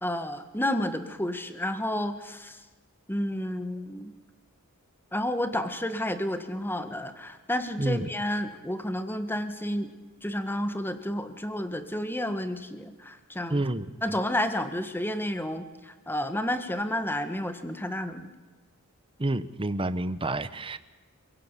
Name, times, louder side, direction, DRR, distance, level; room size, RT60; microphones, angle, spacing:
voice 1, 0.0-2.6 3.1-4.1 5.1-9.9 10.2-13.6 14.0-18.3, left 1 dB, 10° left, 9 dB, 1.6 m, -31 dB
voice 2, 13.5-13.9 19.2-20.8, right 2 dB, 25° right, 13 dB, 0.9 m, -28 dB
27.0 x 17.0 x 8.3 m, 1.3 s
head